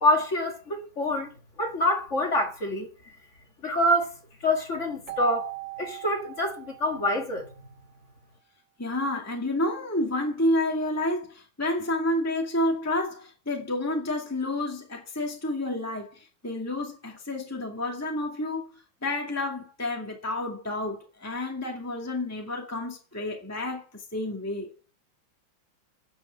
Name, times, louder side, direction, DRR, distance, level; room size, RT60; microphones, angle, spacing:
voice 1, 0.0-1.3 1.6-2.9 3.6-4.1 4.4-5.5 5.8-7.5, left 1 dB, 35° left, 2.4 m, -26 dB
Keyboard (musical), 5.1-7.7, right 20 dB, 65° right, 1.6 m, -40 dB
voice 2, 8.8-18.7 19.0-24.7, left 1 dB, 5° left, 2.1 m, -30 dB
9.2 x 8.7 x 7.6 m
omnidirectional pair, 2.2 m